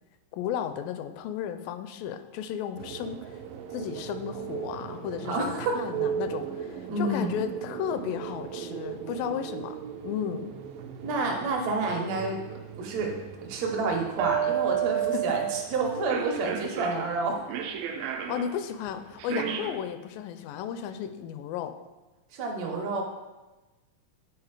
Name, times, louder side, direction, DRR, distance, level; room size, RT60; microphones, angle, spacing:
voice 1, 0.3-3.3 3.7-9.8 10.0-10.5 15.1-15.3 18.3-21.7, left 9 dB, 85° left, 9 dB, 2.2 m, -34 dB
sound 1, 2.8-19.8, right 9 dB, 90° right, 2.3 m, -35 dB
voice 2, 5.2-5.8 6.9-7.4 11.0-12.4 12.8-13.2 13.4-17.4 19.3-19.6 22.3-23.0, right 3 dB, 60° right, 1 dB, 2.1 m, -29 dB
9.7 x 4.2 x 4.7 m, 1.1 s
omnidirectional pair, 4.0 m